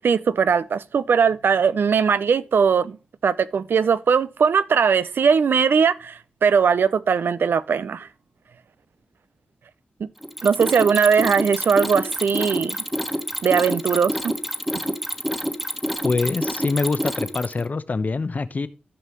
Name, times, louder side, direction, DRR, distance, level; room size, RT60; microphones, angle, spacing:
voice 1, 0.0-3.0 3.2-8.1 10.0-10.1 10.4-12.8 13.4-14.3, right 6 dB, 80° right, 0.5 m, -20 dB
Mechanisms, 10.2-17.7, equal, 5° right, 1.3 m, -27 dB
voice 2, 16.0-18.7, left 3 dB, 50° left, 0.8 m, -24 dB
14.5 x 5.5 x 3.0 m
cardioid pair, 60°, 4 cm